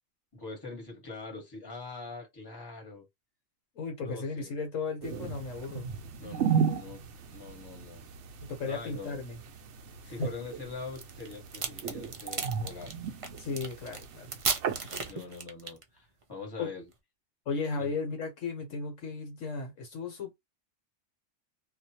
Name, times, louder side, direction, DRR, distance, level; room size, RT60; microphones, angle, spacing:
voice 1, 0.3-3.1 4.0-4.5 6.2-7.0 7.3-8.1 8.6-9.2 10.1-13.0 15.1-16.9 17.8-17.9, left 4 dB, 20° left, 1.3 m, -43 dB
voice 2, 3.7-5.9 8.4-9.4 10.0-10.3 13.4-14.4 16.6-16.7 17.5-20.3, left 4 dB, 70° left, 1.3 m, -35 dB
sound 1, 5.0-15.1, right 7 dB, 65° right, 0.9 m, -35 dB
sound 2, 11.0-15.8, right 4 dB, 50° right, 0.3 m, -34 dB
2.6 x 2.3 x 2.8 m
omnidirectional pair, 1.4 m